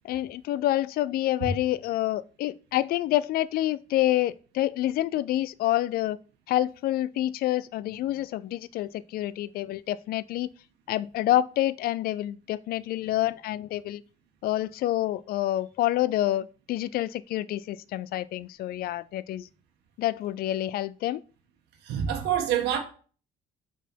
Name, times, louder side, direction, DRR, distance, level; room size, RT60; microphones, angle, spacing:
voice 1, 0.0-6.2 6.5-10.5 10.9-14.0 14.4-19.5 20.0-21.2, left 14 dB, 65° left, 0.4 m, -27 dB
voice 2, 21.8-22.8, right 9 dB, 85° right, 1.4 m, -26 dB
5.6 x 4.1 x 4.5 m
cardioid pair, 110°, 17 cm